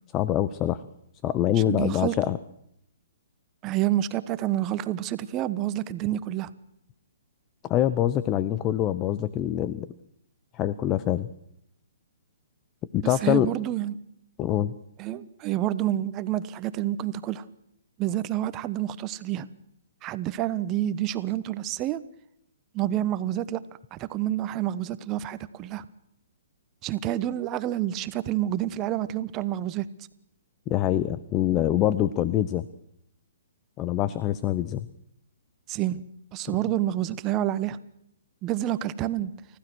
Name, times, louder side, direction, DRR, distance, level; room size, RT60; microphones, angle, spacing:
voice 1, 0.1-0.8 1.2-2.4 7.6-9.9 10.5-11.3 12.9-13.5 14.4-14.7 30.7-32.7 33.8-34.9, left 12 dB, 25° left, 15 dB, 0.9 m, -25 dB
voice 2, 1.7-2.2 3.6-6.5 13.0-13.9 15.0-17.4 18.0-19.5 20.0-22.0 22.7-23.6 23.9-25.9 26.8-29.8 35.7-36.0 36.3-37.8 38.4-39.3, right 13 dB, 25° right, 14 dB, 1.2 m, -28 dB
30.0 x 15.0 x 6.3 m, 0.75 s
hypercardioid pair, 135°, 0 cm